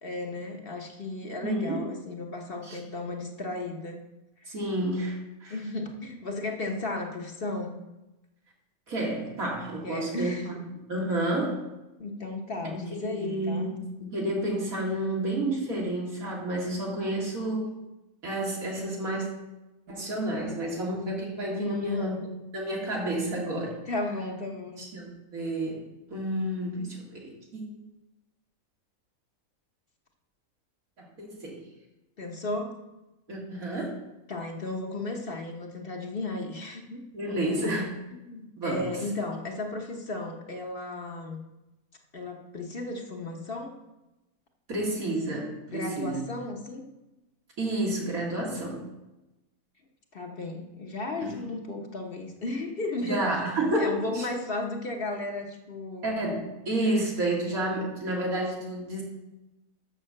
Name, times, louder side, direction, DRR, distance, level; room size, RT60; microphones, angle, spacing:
voice 1, 0.0-4.0 4.4-4.5 5.5-7.8 9.8-10.6 12.0-13.7 21.6-22.1 23.9-24.8 32.2-32.7 34.3-37.0 37.3-37.8 38.1-41.4 42.1-43.8 45.7-46.8 50.1-56.1, left 2 dB, 45° left, 2 dB, 1.1 m, -34 dB
voice 2, 1.4-1.9 2.6-2.8 4.5-5.5 8.9-10.5 10.9-11.7 12.6-17.7 18.2-19.3 19.9-22.3 22.5-23.8 24.8-27.8 31.2-31.6 33.3-34.0 37.1-37.9 38.6-39.0 44.7-46.3 47.6-48.9 51.2-51.4 53.0-54.3 56.0-59.0, right 1 dB, 80° right, -3 dB, 2.4 m, -30 dB
6.6 x 6.6 x 6.5 m, 0.99 s
omnidirectional pair, 1.5 m